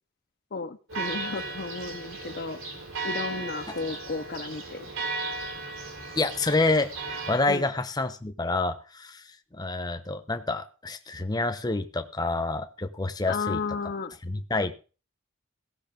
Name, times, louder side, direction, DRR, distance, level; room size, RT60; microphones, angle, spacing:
voice 1, 0.5-2.6 3.0-4.9 7.5-7.7 13.3-14.1, left 4 dB, 50° left, 8 dB, 0.7 m, -33 dB
Church bell, 0.9-7.4, right 3 dB, 80° right, 4.6 m, -35 dB
voice 2, 6.1-9.2 9.5-13.6 14.2-14.8, left 2 dB, 20° left, 8 dB, 0.9 m, -28 dB
16.5 x 6.6 x 5.2 m, 0.36 s
head